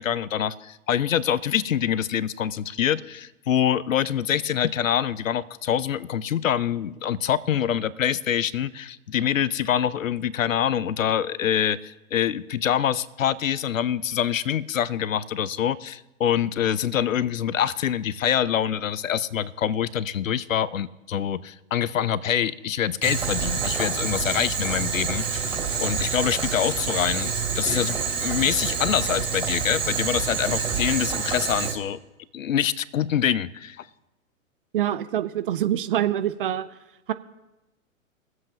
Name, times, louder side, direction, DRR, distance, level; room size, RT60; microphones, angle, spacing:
voice 1, 0.0-25.5 25.8-32.0 32.3-33.8, left 9 dB, 70° left, 19 dB, 0.6 m, -25 dB
Boiling, 23.0-31.7, right 6 dB, 15° right, 3.0 m, -27 dB
voice 2, 34.7-36.7 37.1-37.2, right 11 dB, 40° right, 12 dB, 0.5 m, -25 dB
23.0 x 7.7 x 2.9 m, 0.98 s
figure-of-eight pair, 110°, 41 cm